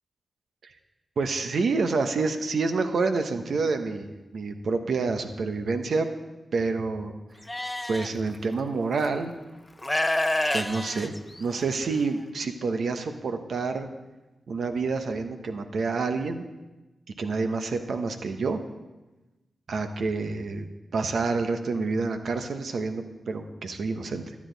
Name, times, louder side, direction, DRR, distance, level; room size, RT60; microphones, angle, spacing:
voice 1, 1.2-6.1 6.5-7.1 7.9-9.4 10.5-11.1 11.4-13.9 14.5-16.5 17.2-18.6 19.7-20.7 20.9-24.3, right 4 dB, 70° right, 7 dB, 0.9 m, -28 dB
Livestock farm animals working animals, 7.5-8.1 9.0-9.1 9.8-11.8, left 1 dB, 20° left, 0.7 m, -28 dB
12.0 x 8.4 x 4.0 m, 1.1 s
supercardioid pair, 40°, 0 cm